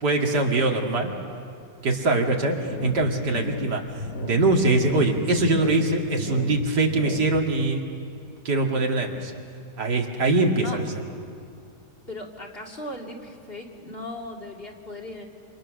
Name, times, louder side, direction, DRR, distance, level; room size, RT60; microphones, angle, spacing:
voice 1, 0.0-1.1 1.8-3.8 4.2-7.8 8.4-9.3 9.8-10.8, right 2 dB, 80° right, 1 dB, 2.7 m, -23 dB
sound 1, 2.7-7.7, left 1 dB, 70° left, 1.5 m, -34 dB
voice 2, 12.1-15.2, left 1 dB, 35° left, 0 dB, 2.7 m, -37 dB
28.0 x 26.5 x 6.4 m, 2.4 s
omnidirectional pair, 1.8 m